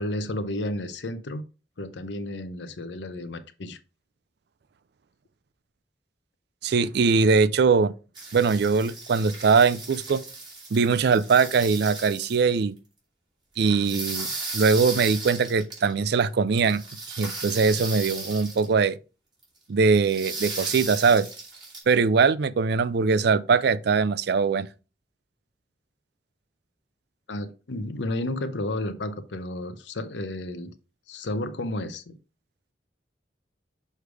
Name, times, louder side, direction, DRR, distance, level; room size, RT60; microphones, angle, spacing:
voice 1, 0.0-1.4 1.8-3.8 27.3-30.7 31.1-32.2, left 1 dB, 80° left, 0.7 m, -32 dB
voice 2, 6.6-7.9 8.3-10.2 10.7-12.8 13.6-14.3 14.5-16.8 17.1-19.0 19.7-21.3 21.9-24.7, right 5 dB, 65° right, 0.4 m, -21 dB
sound 1, 8.2-12.4 13.6-15.9 16.6-18.7 19.4-19.5 20.0-21.8, right 3 dB, 25° right, 2.8 m, -36 dB
6.5 x 3.3 x 4.7 m
head